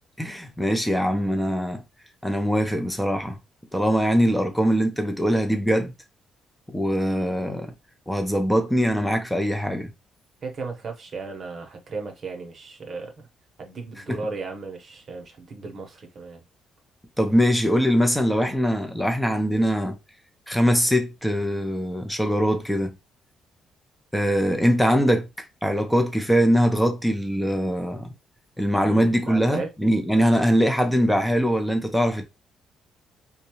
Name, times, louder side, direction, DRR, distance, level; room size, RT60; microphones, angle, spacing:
voice 1, 0.2-1.8 2.2-3.4 3.7-5.9 6.7-7.7 8.1-9.9 14.1-14.2 17.2-20.0 20.5-22.9 24.1-28.1 28.6-32.2, equal, 5° left, 0.6 m, -22 dB
voice 2, 10.4-13.3 13.6-16.4 28.8-29.7, right 4 dB, 50° right, 0.8 m, -35 dB
2.7 x 2.2 x 2.9 m
cardioid pair, 90°, 0 cm